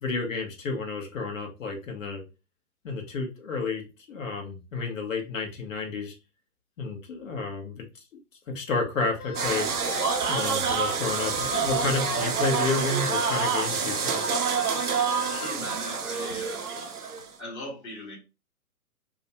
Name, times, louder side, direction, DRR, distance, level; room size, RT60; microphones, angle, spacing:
voice 1, 0.0-2.2 2.8-6.1 6.8-8.0 8.5-9.7 10.3-14.2, left 3 dB, 55° left, 1.0 m, -31 dB
sound 1, 9.2-10.2 10.6-10.8 11.2-12.3 12.7-15.5, left 2 dB, 80° left, 0.9 m, -37 dB
sound 2, 9.3-17.3, right 6 dB, 75° right, 0.7 m, -27 dB
Liquid, 10.4-16.0 16.3-16.6 16.9-17.3, left 3 dB, 35° left, 0.4 m, -46 dB
voice 2, 15.3-16.7 17.4-18.2, equal, 15° left, 0.7 m, -39 dB
2.5 x 2.1 x 2.8 m
figure-of-eight pair, 125°, 45 cm